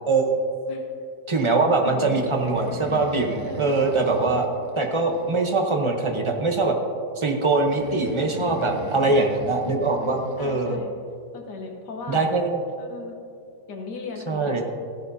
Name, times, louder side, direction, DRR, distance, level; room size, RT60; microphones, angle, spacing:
voice 1, 0.0-0.4 1.3-4.5 4.8-6.8 7.2-10.8 12.1-12.6 14.3-14.6, right 3 dB, 30° right, 2 dB, 0.6 m, -22 dB
voice 2, 1.8-2.2 3.4-3.8 8.4-9.4 9.9-10.1 10.4-10.9 11.3-12.2 12.8-13.2 13.7-14.6, left 4 dB, 80° left, 2 dB, 1.7 m, -38 dB
Breathing, 2.1-5.8 7.7-10.8, right 2 dB, 65° right, 1.6 m, -40 dB
15.5 x 10.5 x 2.7 m, 2.4 s
omnidirectional pair, 1.8 m